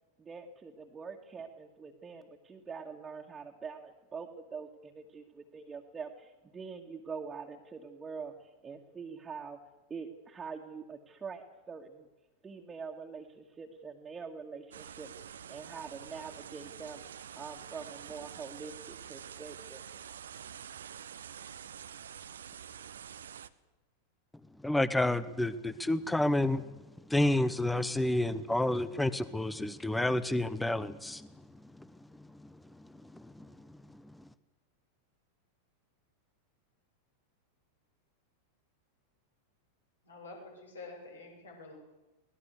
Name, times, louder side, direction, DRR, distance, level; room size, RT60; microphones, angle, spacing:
voice 1, 0.2-9.6 9.9-12.1 12.4-17.0 17.4-19.8, right 5 dB, 15° right, -1 dB, 2.2 m, -44 dB
sound 1, 14.7-23.5, right 8 dB, 65° right, 1.0 m, -47 dB
voice 2, 24.6-26.6 27.1-31.3 31.8-31.9 32.2-32.5 33.0-34.0, left 1 dB, 5° left, 16 dB, 1.0 m, -30 dB
voice 3, 40.0-41.8, left 3 dB, 75° left, 0 dB, 7.9 m, -48 dB
24.0 x 19.0 x 8.2 m, 1.0 s
figure-of-eight pair, 90°, 0 cm